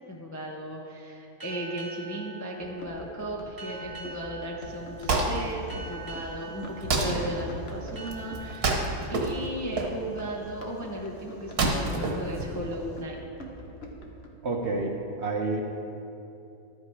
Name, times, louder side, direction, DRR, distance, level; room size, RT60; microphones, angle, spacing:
voice 1, 0.1-13.2, right 1 dB, 15° left, -1 dB, 0.6 m, -36 dB
sound 1, 1.4-10.7, right 3 dB, 15° right, 1.7 m, -46 dB
Run, 2.6-14.3, equal, 45° left, 1.2 m, -45 dB
Wood, 4.7-13.0, right 2 dB, 75° right, 1.7 m, -30 dB
voice 2, 14.4-15.6, right 3 dB, 50° right, 1 dB, 1.1 m, -29 dB
12.0 x 8.0 x 4.8 m, 2.8 s
omnidirectional pair, 1.6 m